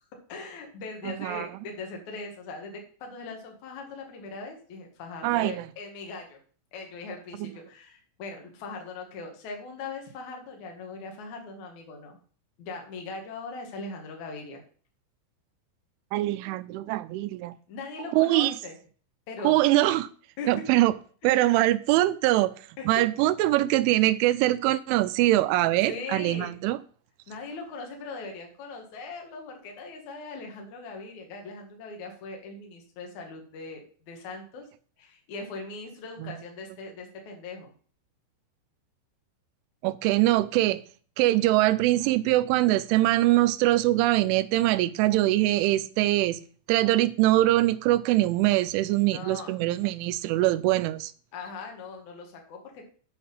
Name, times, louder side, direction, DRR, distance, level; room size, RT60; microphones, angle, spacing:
voice 1, 0.3-6.4 6.7-12.2 12.6-14.6 17.7-18.8 19.3-19.6 20.4-20.5 22.8-22.9 25.9-26.6 27.3-34.7 35.0-37.7 49.1-49.6 51.3-52.9, left 3 dB, 50° left, 2.6 m, -40 dB
voice 2, 1.0-1.5 5.2-5.7 16.1-17.6 18.1-18.6 19.4-20.1 20.5-20.9 21.2-26.8 36.2-36.4 39.8-40.8 41.2-46.4 46.7-51.1, right 16 dB, 85° right, 3.0 m, -23 dB
8.6 x 5.9 x 5.6 m
omnidirectional pair, 5.5 m